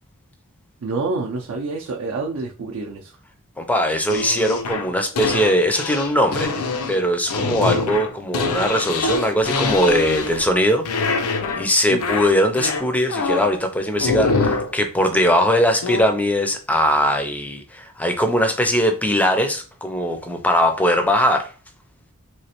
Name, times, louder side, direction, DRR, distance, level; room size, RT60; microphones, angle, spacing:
voice 1, 0.8-3.2 11.8-12.1, right 3 dB, 65° right, 0.5 m, -27 dB
voice 2, 3.6-6.5 6.9-10.9 11.2-21.5, equal, 5° left, 0.4 m, -20 dB
sound 1, 4.1-10.6 10.8-11.7 12.0-13.6 14.0-14.7 15.8-16.0, left 4 dB, 90° left, 0.5 m, -24 dB
3.2 x 3.0 x 2.9 m
head